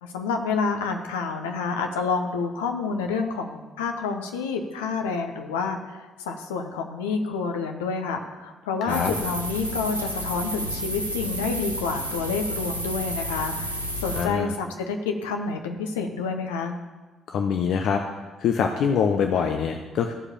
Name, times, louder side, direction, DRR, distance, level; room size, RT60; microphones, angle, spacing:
voice 1, 0.0-16.8, left 4 dB, 75° left, 5 dB, 0.9 m, -28 dB
voice 2, 8.8-9.1 14.1-14.5 17.3-18.0 18.4-20.1, left 7 dB, 55° left, 5 dB, 0.7 m, -24 dB
sound 1, 8.9-14.3, right 1 dB, 90° right, 0.6 m, -31 dB
13.5 x 4.9 x 7.3 m, 1.2 s
figure-of-eight pair, 45°, 0 cm